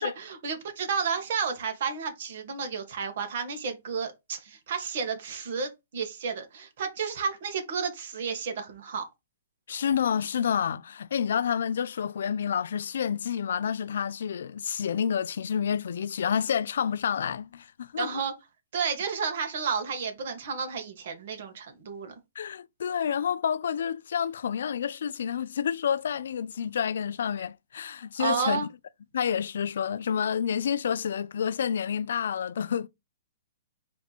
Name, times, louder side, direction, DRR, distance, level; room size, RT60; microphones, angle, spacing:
voice 1, 0.0-9.0 18.0-18.3 18.7-22.1 28.2-28.7, right 5 dB, 60° right, 1.5 m, -31 dB
voice 2, 9.7-18.2 22.4-28.7 29.1-32.9, left 8 dB, 75° left, 0.3 m, -29 dB
4.5 x 2.9 x 4.0 m
hypercardioid pair, 150°, 0 cm